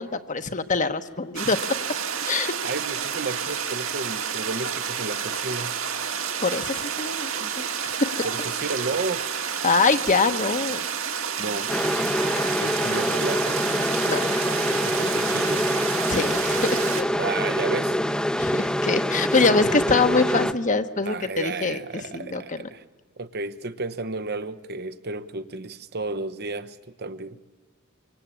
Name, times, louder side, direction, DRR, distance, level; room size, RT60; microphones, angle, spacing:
voice 1, 0.0-1.8 2.2-2.5 6.4-8.3 9.6-10.8 12.4-12.5 14.1-14.3 16.1-17.1 18.4-21.8 22.1-22.7, left 4 dB, 40° left, 9 dB, 1.2 m, -24 dB
sound 1, 1.4-17.0, right 7 dB, 75° right, 2.3 m, -30 dB
voice 2, 2.6-5.7 8.2-9.2 11.4-11.7 12.6-13.6 14.9-15.7 17.2-18.0 21.0-22.8 23.2-27.4, right 3 dB, 50° right, 12 dB, 1.0 m, -32 dB
sound 2, 11.7-20.5, equal, 5° left, 0.8 m, -25 dB
25.5 x 24.5 x 8.7 m, 1.3 s
head